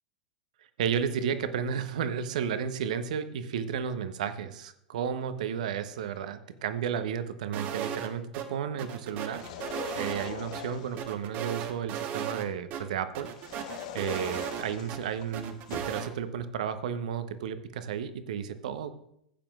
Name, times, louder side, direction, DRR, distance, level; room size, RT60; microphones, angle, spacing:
voice 1, 0.8-9.4 10.0-19.0, right 8 dB, 60° right, 11 dB, 0.8 m, -33 dB
sound 1, 7.5-8.1 8.3-8.5 8.8-10.6 11.0-12.5 12.7-12.8 13.1-15.0 15.3-16.1, right 9 dB, 40° right, 1.2 m, -36 dB
sound 2, 9.3-11.1 13.3-16.0, left 9 dB, 55° left, 0.9 m, -42 dB
15.0 x 8.8 x 2.4 m, 0.74 s
figure-of-eight pair, 90°, 4 cm